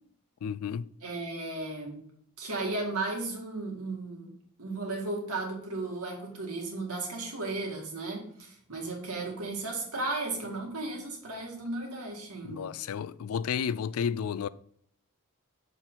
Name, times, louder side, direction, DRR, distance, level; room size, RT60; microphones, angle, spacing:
voice 1, 0.4-0.8 12.4-14.5, left 7 dB, 75° left, 0.3 m, -32 dB
voice 2, 1.0-2.1 2.4-4.3 4.6-12.7, right 2 dB, 85° right, 2.2 m, -35 dB
6.8 x 5.7 x 3.9 m
head